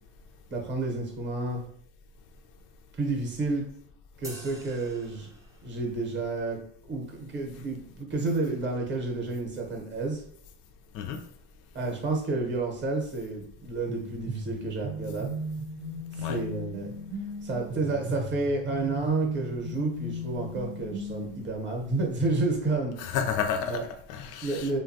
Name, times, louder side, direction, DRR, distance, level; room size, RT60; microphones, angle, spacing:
voice 1, 0.5-1.6 3.0-3.6 4.2-5.3 5.6-6.6 6.9-10.2 11.7-15.3 16.1-16.9 17.4-23.0 23.6-23.8 24.4-24.8, right 3 dB, 25° right, 1 dB, 0.8 m, -30 dB
sound 1, 4.2-5.9, right 1 dB, 10° right, 0.4 m, -47 dB
sound 2, 13.9-21.5, equal, 80° right, 0.7 m, -36 dB
voice 2, 23.0-24.8, left 7 dB, 45° left, 5 dB, 0.4 m, -31 dB
2.7 x 2.3 x 2.6 m, 0.66 s
supercardioid pair, 105°, 43 cm